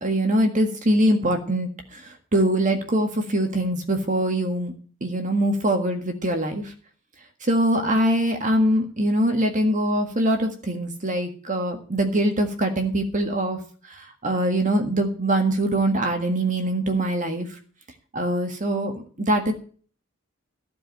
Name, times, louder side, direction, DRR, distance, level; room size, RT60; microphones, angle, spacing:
voice 1, 0.0-2.0 2.3-4.7 5.0-6.6 7.4-13.6 14.2-17.5 18.1-18.9 19.2-19.5, right 1 dB, 35° right, 5 dB, 1.7 m, -23 dB
15.0 x 5.1 x 9.1 m, 0.43 s
head